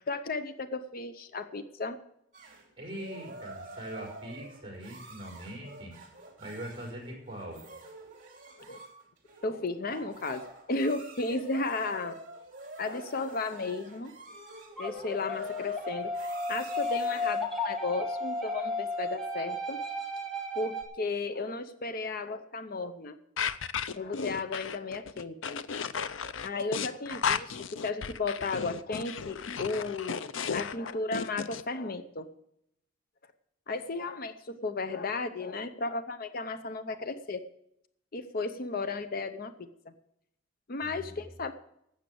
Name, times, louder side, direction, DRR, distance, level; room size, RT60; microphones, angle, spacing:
voice 1, 0.0-2.0 8.6-8.8 9.4-10.4 10.7-12.2 12.8-14.1 14.8-16.1 16.5-19.8 20.6-23.2 24.0-25.6 26.4-27.5 27.8-32.3 33.7-37.4 38.1-39.9 40.7-41.5, left 3 dB, 50° left, 10 dB, 0.7 m, -34 dB
sound 1, 2.3-17.5, right 2 dB, 40° right, 3.1 m, -48 dB
voice 2, 2.8-5.9 6.4-7.6 40.8-41.2, right 1 dB, 25° right, -1 dB, 4.6 m, -42 dB
sound 2, 14.8-20.8, left 2 dB, ahead, 1.9 m, -34 dB
sound 3, 23.4-31.6, left 6 dB, 90° left, 0.6 m, -34 dB
12.5 x 8.2 x 7.8 m, 0.78 s
head